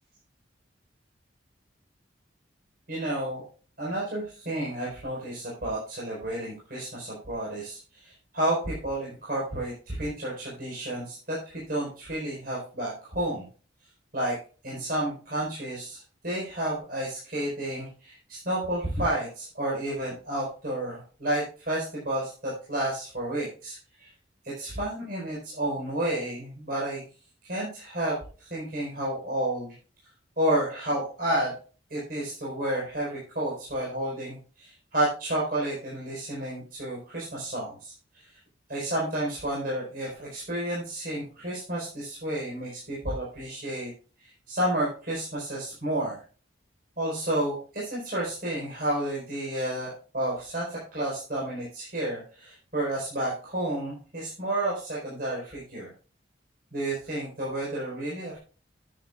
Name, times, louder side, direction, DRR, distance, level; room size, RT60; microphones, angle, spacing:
voice 1, 2.9-3.4 3.8-13.4 14.1-14.4 14.6-24.1 24.4-27.0 27.4-29.7 30.4-31.5 31.9-37.9 38.7-43.9 44.2-46.2 47.0-55.9 56.7-58.4, right 1 dB, 50° right, -5 dB, 4.7 m, -31 dB
13.0 x 9.5 x 2.4 m, 0.37 s
head